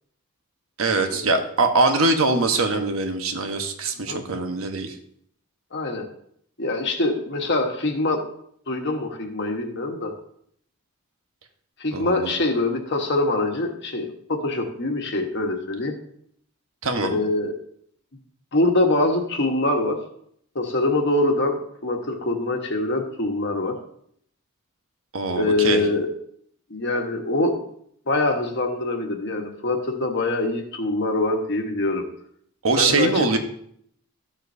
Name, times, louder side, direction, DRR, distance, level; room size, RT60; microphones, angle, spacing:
voice 1, 0.8-4.9 11.9-12.3 16.8-17.2 25.1-25.8 32.6-33.4, right 3 dB, 70° right, 5 dB, 1.2 m, -22 dB
voice 2, 5.7-6.1 6.6-8.2 8.7-10.1 11.8-15.9 17.0-17.5 18.5-20.0 20.5-23.7 25.4-26.1 26.7-27.6 28.1-32.0 32.8-33.3, left 2 dB, 50° left, 3 dB, 1.3 m, -24 dB
13.5 x 7.4 x 2.8 m, 0.68 s
head